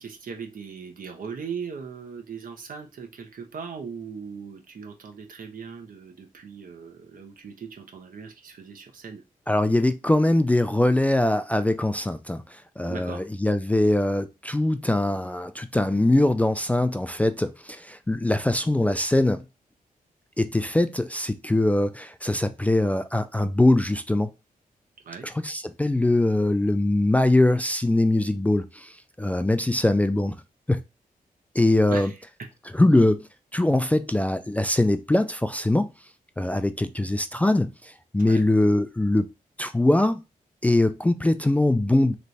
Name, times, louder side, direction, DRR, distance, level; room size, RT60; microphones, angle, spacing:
voice 1, 0.0-9.2 12.9-13.2 25.0-25.3 29.8-29.9 31.9-32.5 38.2-38.5, right 6 dB, 70° right, 1.0 m, -39 dB
voice 2, 9.5-19.4 20.4-24.3 25.2-28.9 29.2-30.4 30.7-30.8 31.6-32.1 32.7-33.3 33.5-35.9 36.4-39.3 39.6-40.2 40.6-42.1, left 1 dB, 10° left, 0.3 m, -22 dB
3.2 x 3.2 x 4.0 m
wide cardioid pair, 105°, 15 cm